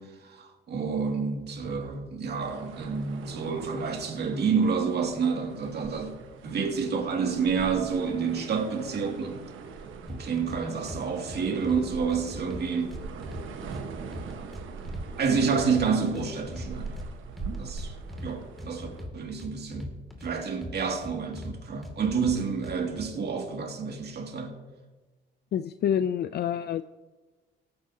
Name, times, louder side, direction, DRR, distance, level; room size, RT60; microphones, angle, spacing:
voice 1, 0.0-6.1 6.4-9.4 10.1-12.9 15.2-17.0 17.6-17.9 18.2-18.9 19.1-19.9 20.2-24.5, right 5 dB, 55° right, 2.4 m, -29 dB
sound 1, 2.4-19.1, right 5 dB, 80° right, 1.3 m, -42 dB
sound 2, 10.1-10.6 10.9-11.8 12.1-13.8 14.1-15.0 15.3-17.1 17.4-18.3 18.6-20.3 20.6-21.5 21.8-23.0, left 1 dB, ahead, 2.4 m, -39 dB
voice 2, 25.5-26.8, left 9 dB, 55° left, 0.4 m, -27 dB
19.0 x 9.5 x 2.8 m
cardioid pair, 90°, 20 cm